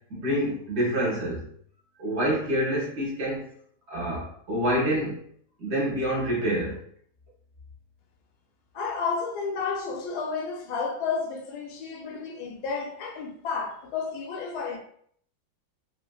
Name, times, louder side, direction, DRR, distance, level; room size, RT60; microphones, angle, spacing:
voice 1, 0.1-1.4 2.0-3.5 3.9-5.2 5.6-6.8, equal, 45° right, 1.0 m, -27 dB
voice 2, 8.7-14.8, left 5 dB, 70° left, 1.1 m, -31 dB
3.3 x 2.4 x 2.3 m
omnidirectional pair, 2.0 m